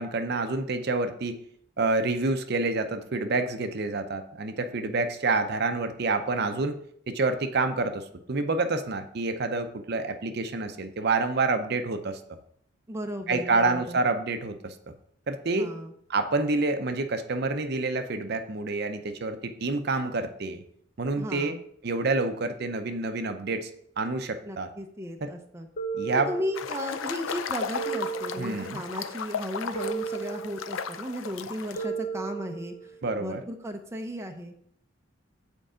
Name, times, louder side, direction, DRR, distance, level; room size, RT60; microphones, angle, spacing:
voice 1, 0.0-1.4 1.8-6.8 7.1-12.2 13.3-14.8 15.3-15.7 16.1-20.6 21.0-21.6 21.8-23.7 24.0-24.7 25.2-25.3 26.0-26.3 28.4-28.8 33.0-33.4, right 3 dB, 55° right, 8 dB, 0.6 m, -28 dB
voice 2, 12.9-14.0 15.5-15.9 21.2-21.6 24.4-25.7 26.3-34.5, equal, 15° right, 4 dB, 0.6 m, -35 dB
sound 1, 25.8-26.9 27.8-28.9 29.8-30.9 31.8-32.9, right 6 dB, 45° left, 1.2 m, -35 dB
sound 2, 26.5-31.8, left 6 dB, 90° left, 0.5 m, -35 dB
7.8 x 4.6 x 5.0 m, 0.65 s
head